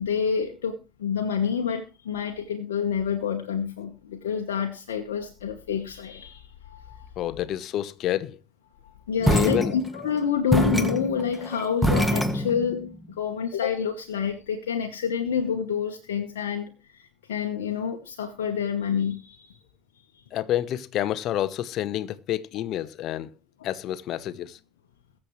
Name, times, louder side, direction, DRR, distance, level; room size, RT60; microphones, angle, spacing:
voice 1, 0.0-7.1 8.8-17.0 17.3-19.6, left 7 dB, 90° left, 1.0 m, -28 dB
voice 2, 7.2-8.4 9.2-9.7 20.3-23.3 23.6-24.6, left 12 dB, 60° left, 0.8 m, -28 dB
sound 1, 9.2-10.1 10.5-12.9, equal, ahead, 2.0 m, -24 dB
22.0 x 7.4 x 3.1 m
hypercardioid pair, 65°, 0 cm